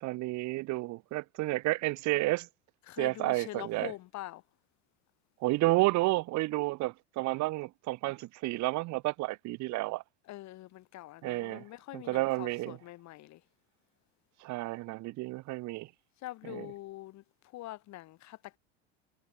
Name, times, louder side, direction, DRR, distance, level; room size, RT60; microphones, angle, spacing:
voice 1, 0.0-2.5 3.0-3.9 5.4-10.0 11.2-11.6 11.9-12.8 14.4-15.9 16.5-16.7, right 20 dB, 55° right, 2.0 m, -31 dB
voice 2, 2.9-4.4 10.2-13.4 16.2-18.6, left 16 dB, 50° left, 7.7 m, -44 dB
hypercardioid pair, 80°, 35 cm